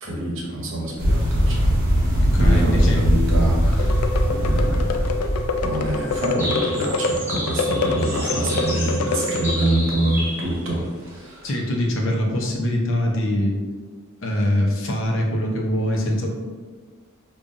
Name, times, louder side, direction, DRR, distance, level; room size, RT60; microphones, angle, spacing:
voice 1, 0.0-5.1 5.6-11.5, right 1 dB, 65° right, -3 dB, 0.9 m, -26 dB
sound 1, 1.0-6.3, equal, 40° right, 1.2 m, -20 dB
voice 2, 2.2-3.0 11.4-13.5 14.2-16.3, left 1 dB, 60° left, 0 dB, 0.7 m, -23 dB
sound 2, 3.7-9.8, left 3 dB, 85° left, 0.3 m, -26 dB
sound 3, 5.8-11.5, equal, 10° right, 1.2 m, -32 dB
5.3 x 2.4 x 2.5 m, 1.5 s
head